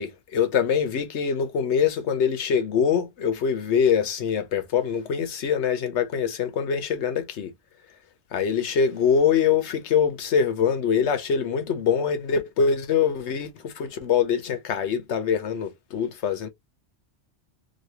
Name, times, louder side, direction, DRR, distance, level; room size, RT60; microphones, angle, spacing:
voice 1, 0.0-7.5 8.3-16.5, left 7 dB, 80° left, 1.1 m, -24 dB
3.0 x 2.7 x 2.8 m
omnidirectional pair, 1.1 m